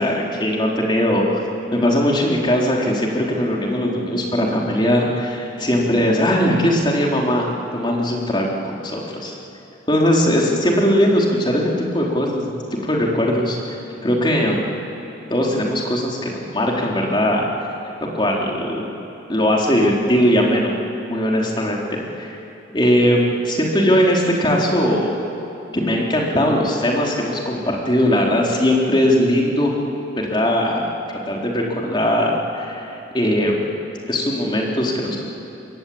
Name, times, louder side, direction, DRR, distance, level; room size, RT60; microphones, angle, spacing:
voice 1, 0.0-1.4 1.7-9.4 9.9-12.6 12.8-13.8 14.0-14.7 15.3-17.4 18.1-18.9 19.3-20.8 21.1-22.4 22.7-25.1 25.7-29.8 30.3-30.9 31.3-33.6 34.1-35.2, equal, 25° left, -2 dB, 3.7 m, -19 dB
27.0 x 22.0 x 8.7 m, 2.9 s
head